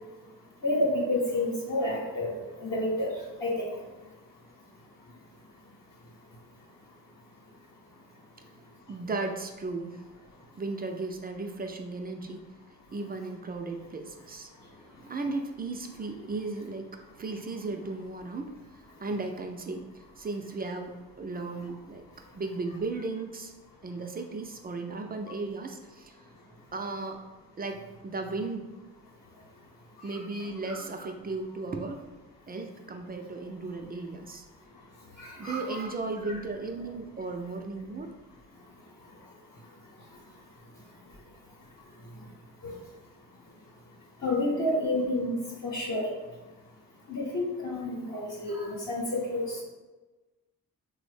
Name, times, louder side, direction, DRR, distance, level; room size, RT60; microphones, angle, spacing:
voice 1, 0.6-2.3 2.6-3.1 3.4-3.7 30.1-30.4 30.7-30.8 35.2-35.6 42.6-42.7 44.2-45.4 45.6-46.0 47.1-49.6, left 1 dB, 50° left, -5 dB, 1.0 m, -29 dB
voice 2, 8.9-10.0 10.6-12.4 12.9-14.5 15.0-22.0 22.3-23.5 23.8-26.2 26.7-27.2 27.6-28.7 30.0-32.0 32.5-34.5 35.4-38.1, right 3 dB, 25° right, 4 dB, 0.4 m, -36 dB
3.3 x 2.0 x 3.2 m, 1.2 s
hypercardioid pair, 40°, 39 cm